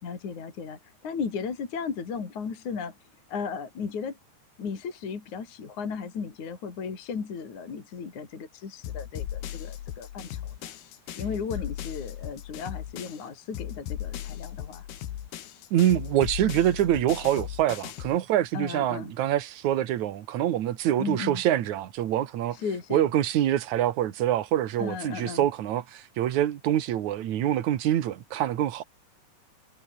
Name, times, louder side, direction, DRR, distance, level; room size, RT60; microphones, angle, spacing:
voice 1, 0.0-2.9 3.3-4.2 4.6-10.7 11.2-14.9 18.5-19.1 20.9-21.4 22.5-23.1 24.8-25.5, left 5 dB, 45° left, 4.7 m, -35 dB
sound 1, 8.8-13.3 13.5-18.2, left 11 dB, 65° left, 3.6 m, -37 dB
voice 2, 15.7-22.6 22.9-28.8, right 12 dB, 60° right, 2.1 m, -25 dB
omnidirectional pair, 5.2 m